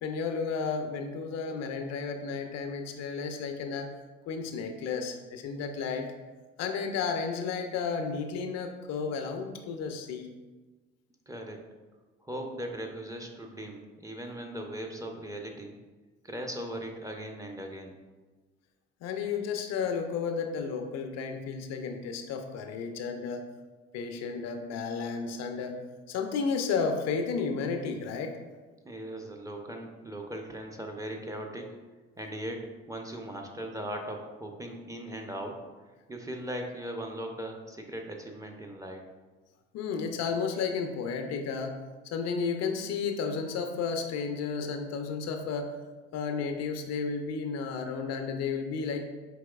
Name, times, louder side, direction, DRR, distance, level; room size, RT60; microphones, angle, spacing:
voice 1, 0.0-3.9 4.3-6.1 6.6-10.3 19.0-23.4 23.9-25.8 26.1-28.4 39.7-41.7 42.1-45.7 46.1-49.0, left 5 dB, 60° left, 5 dB, 0.5 m, -32 dB
voice 2, 11.3-11.6 12.2-15.7 16.2-18.0 28.8-31.7 32.2-35.6 36.1-39.0, right 1 dB, 10° right, 2 dB, 0.5 m, -39 dB
4.6 x 2.9 x 2.3 m, 1.3 s
hypercardioid pair, 55°, 29 cm